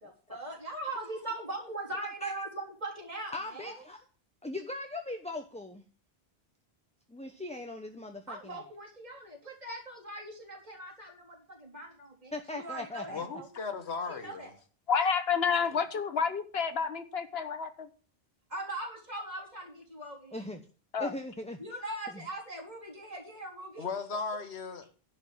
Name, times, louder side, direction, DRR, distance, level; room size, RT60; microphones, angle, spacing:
voice 1, 0.0-3.8 8.3-13.5 14.1-14.5 18.5-20.4 21.6-23.9, right 2 dB, 40° right, 3.9 m, -40 dB
voice 2, 3.3-4.0 4.4-5.8 7.1-8.6 12.3-13.2 20.3-20.6 21.0-21.8 22.1-22.2, left 2 dB, 5° left, 0.8 m, -39 dB
voice 3, 13.1-14.5 23.8-24.9, left 4 dB, 90° left, 1.5 m, -37 dB
voice 4, 14.9-17.9 20.9-21.1, left 6 dB, 75° left, 1.2 m, -29 dB
11.0 x 5.4 x 8.2 m
omnidirectional pair, 1.1 m